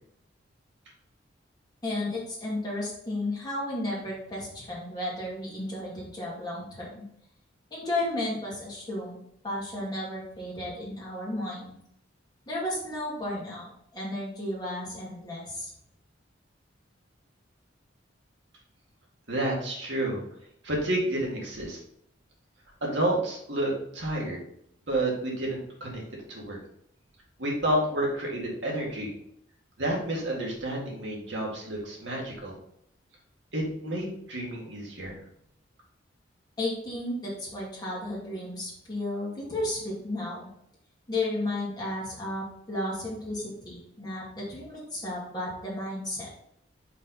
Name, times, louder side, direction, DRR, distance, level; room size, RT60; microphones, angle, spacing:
voice 1, 1.8-7.0 7.7-9.2 9.4-11.7 12.5-15.7 36.6-40.5 41.1-46.3, left 1 dB, 20° left, -6 dB, 2.3 m, -33 dB
voice 2, 19.3-20.2 20.6-21.8 22.8-24.4 24.9-26.0 26.3-26.6 27.4-29.1 29.8-32.5 33.5-35.1, right 1 dB, 65° right, -2 dB, 2.0 m, -30 dB
5.6 x 5.2 x 4.2 m, 0.72 s
head